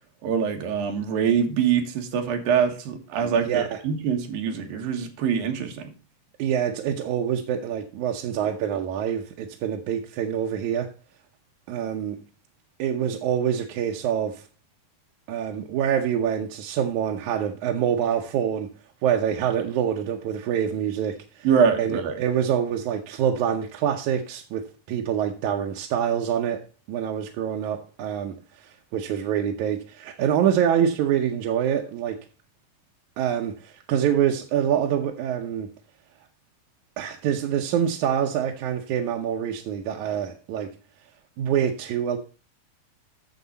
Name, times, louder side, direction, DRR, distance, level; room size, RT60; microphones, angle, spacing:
voice 1, 0.2-5.9 21.4-22.2, right 7 dB, 90° right, 3.3 m, -24 dB
voice 2, 3.2-3.8 6.4-10.9 11.7-12.2 12.8-14.4 15.3-18.7 19.0-21.5 21.8-26.6 26.9-32.2 33.2-35.7 37.0-40.7 41.4-42.2, right 9 dB, 70° right, 2.0 m, -26 dB
9.5 x 7.2 x 4.0 m
omnidirectional pair, 3.9 m